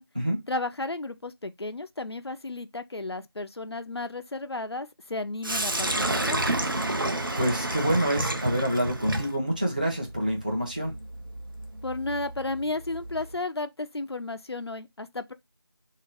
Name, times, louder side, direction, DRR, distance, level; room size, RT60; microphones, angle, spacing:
voice 1, 0.5-6.4 11.8-15.3, left 2 dB, 75° left, 0.5 m, -33 dB
Sink (filling or washing), 5.4-13.4, right 1 dB, 55° right, 0.8 m, -31 dB
voice 2, 7.4-10.9, equal, 20° right, 0.8 m, -27 dB
3.4 x 2.9 x 4.6 m
figure-of-eight pair, 170°, 14 cm